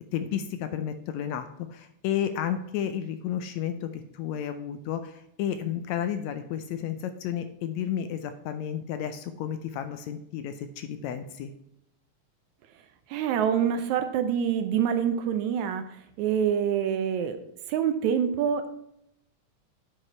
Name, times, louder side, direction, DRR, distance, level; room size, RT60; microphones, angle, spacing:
voice 1, 0.1-11.5, left 9 dB, 80° left, 9 dB, 1.7 m, -32 dB
voice 2, 13.1-15.8 16.2-17.4 17.7-18.7, right 8 dB, 75° right, 8 dB, 2.0 m, -26 dB
9.5 x 4.9 x 4.3 m, 0.78 s
omnidirectional pair, 3.5 m